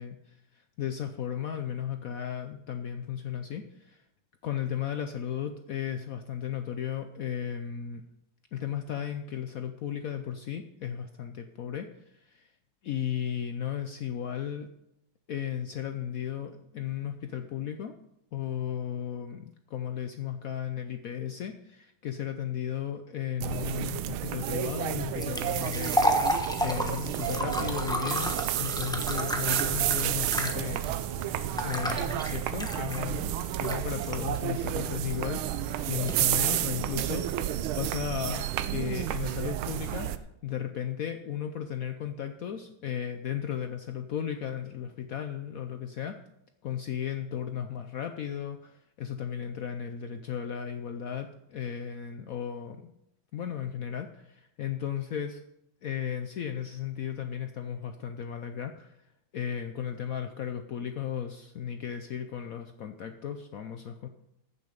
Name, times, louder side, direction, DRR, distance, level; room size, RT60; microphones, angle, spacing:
voice 1, 0.0-4.0 4.4-8.0 8.5-12.5 12.8-14.7 15.3-18.0 18.3-30.9 31.6-46.2 46.6-52.9 53.3-55.4 55.8-59.0 59.3-64.1, left 9 dB, 80° left, 7 dB, 0.7 m, -35 dB
sound 1, 23.4-40.2, right 12 dB, 85° right, 1.5 m, -31 dB
sound 2, 24.3-37.7, equal, 5° left, 0.4 m, -34 dB
14.5 x 7.0 x 5.1 m, 0.84 s
omnidirectional pair, 2.2 m